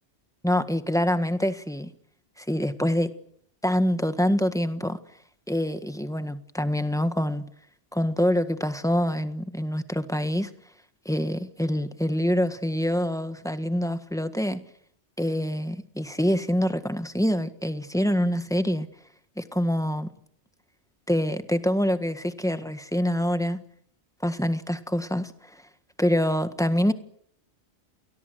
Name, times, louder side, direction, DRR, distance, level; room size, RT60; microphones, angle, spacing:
voice 1, 0.4-1.9 2.4-3.1 3.6-5.0 5.5-7.5 7.9-10.5 11.0-14.6 15.2-18.9 19.4-20.1 21.1-23.6 24.2-25.6 26.0-26.9, equal, 5° left, 10 dB, 1.5 m, -25 dB
30.0 x 20.5 x 8.0 m, 0.68 s
omnidirectional pair, 1.2 m